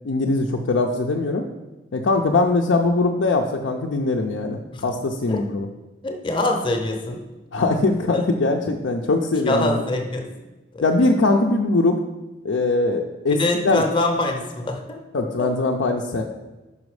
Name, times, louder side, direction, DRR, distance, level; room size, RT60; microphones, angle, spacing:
voice 1, 0.0-1.4 1.9-5.7 7.5-9.8 10.8-12.0 12.4-13.4 13.6-13.8 15.1-16.2, left 3 dB, 75° left, 0 dB, 0.5 m, -21 dB
voice 2, 6.0-7.2 8.0-8.2 8.5-8.6 9.5-10.3 10.7-10.9 13.3-15.0 15.4-15.5, left 2 dB, 25° left, 3 dB, 0.7 m, -24 dB
5.6 x 5.1 x 4.8 m, 1.1 s
head